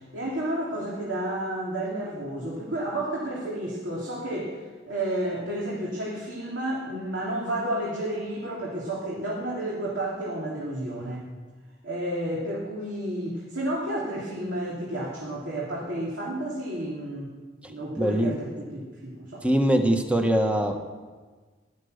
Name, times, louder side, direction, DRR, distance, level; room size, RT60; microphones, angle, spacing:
voice 1, 0.0-11.3 11.8-17.3 17.6-19.5, right 1 dB, 70° right, -4 dB, 3.0 m, -31 dB
voice 2, 18.0-18.3 19.4-20.8, right 1 dB, 5° right, 4 dB, 1.1 m, -22 dB
16.5 x 12.0 x 6.5 m, 1.4 s
head